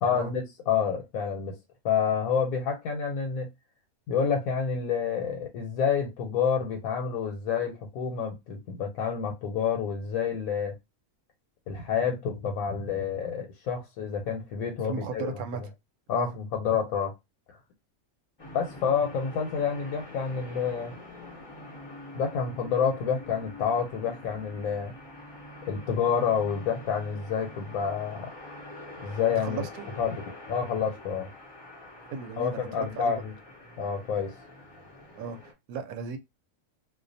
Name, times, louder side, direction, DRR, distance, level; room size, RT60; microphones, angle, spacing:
voice 1, 0.0-1.6 1.8-3.5 4.1-10.7 11.7-15.4 16.1-17.1 17.5-17.6 18.5-20.9 22.1-24.9 25.7-28.3 29.0-29.7 30.0-30.1 30.5-31.3 32.4-33.3 33.8-34.3, left 7 dB, 90° left, 1.0 m, -28 dB
voice 2, 14.8-15.6 16.1-16.3 29.4-29.9 32.1-33.2 35.2-36.2, right 5 dB, 80° right, 1.0 m, -36 dB
sound 1, 18.4-35.5, left 1 dB, 30° left, 0.5 m, -45 dB
2.4 x 2.1 x 2.6 m
omnidirectional pair, 1.5 m